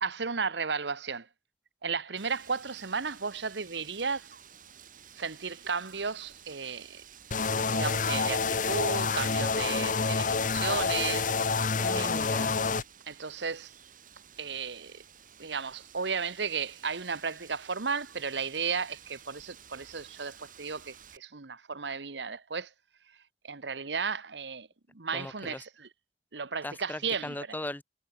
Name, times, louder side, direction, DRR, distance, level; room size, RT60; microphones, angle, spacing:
voice 1, 0.0-1.3 1.8-4.3 5.2-7.0 7.6-11.3 11.9-12.2 13.1-13.7 14.4-15.0 15.4-22.7 23.4-24.7 24.9-25.9 26.3-27.4, right 5 dB, 85° right, 1.3 m, -34 dB
Wind, 2.2-21.2, right 8 dB, 50° right, 5.8 m, -53 dB
sound 1, 7.3-12.8, left 4 dB, 50° left, 1.3 m, -28 dB
voice 2, 11.8-12.5 25.1-25.6 26.6-27.8, left 1 dB, 10° left, 1.0 m, -38 dB
head